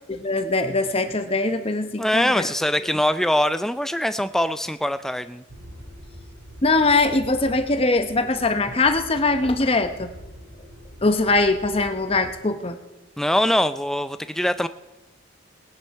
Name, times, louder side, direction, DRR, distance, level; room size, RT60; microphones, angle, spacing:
voice 1, 0.1-2.5 6.6-10.1 11.0-12.8, left 3 dB, 30° left, 8 dB, 0.8 m, -22 dB
voice 2, 2.0-5.4 13.2-14.7, equal, ahead, 11 dB, 0.4 m, -23 dB
sound 1, 5.5-12.3, equal, 75° right, 2.7 m, -43 dB
19.5 x 9.6 x 4.7 m, 1.1 s
head